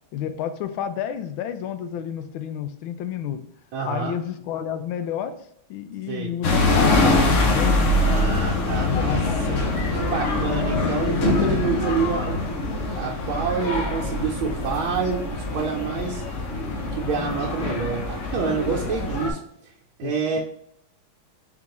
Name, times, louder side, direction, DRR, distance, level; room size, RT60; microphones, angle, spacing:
voice 1, 0.1-3.4 3.8-5.3 5.7-7.8 8.7-9.7 20.0-20.4, left 9 dB, 80° left, 9 dB, 1.3 m, -30 dB
voice 2, 3.7-4.1 6.1-6.3 7.9-9.2 9.9-12.4 12.9-16.2 16.9-19.4 20.0-20.4, right 5 dB, 80° right, -3 dB, 1.4 m, -27 dB
sound 1, 6.4-19.3, left 2 dB, 60° left, 0.8 m, -24 dB
3.7 x 3.6 x 2.9 m, 0.73 s
omnidirectional pair, 2.3 m